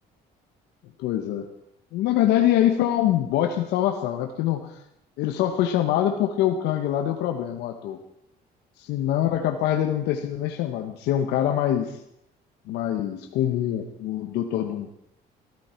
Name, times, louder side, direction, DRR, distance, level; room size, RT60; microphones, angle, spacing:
voice 1, 1.0-1.5 1.9-4.8 5.2-8.0 8.9-12.0 12.7-14.9, left 11 dB, 90° left, 5 dB, 1.2 m, -24 dB
15.5 x 14.0 x 4.5 m, 0.77 s
cardioid pair, 110°, 17 cm